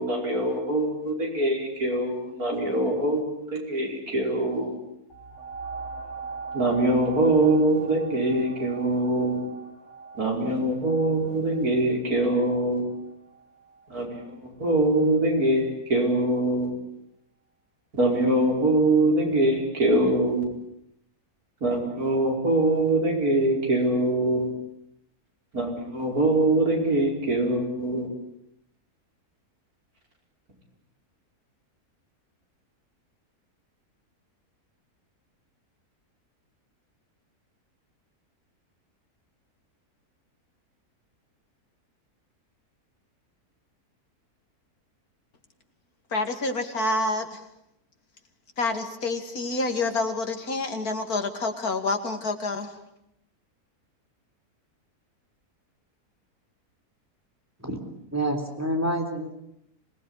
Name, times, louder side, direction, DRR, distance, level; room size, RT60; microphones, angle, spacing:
voice 1, 0.0-3.2 3.5-4.8 6.5-9.4 10.2-12.9 13.9-16.7 17.9-20.5 21.6-24.5 25.5-28.1, right 1 dB, 70° right, 1 dB, 5.8 m, -23 dB
sound 1, 5.1-14.4 15.0-15.1, right 4 dB, 50° left, 4.9 m, -41 dB
voice 2, 46.1-47.4 48.6-52.8, left 2 dB, 70° left, 6 dB, 3.0 m, -28 dB
voice 3, 58.1-59.3, right 1 dB, 10° right, 3 dB, 3.6 m, -27 dB
26.5 x 19.5 x 10.0 m, 0.78 s
omnidirectional pair, 1.6 m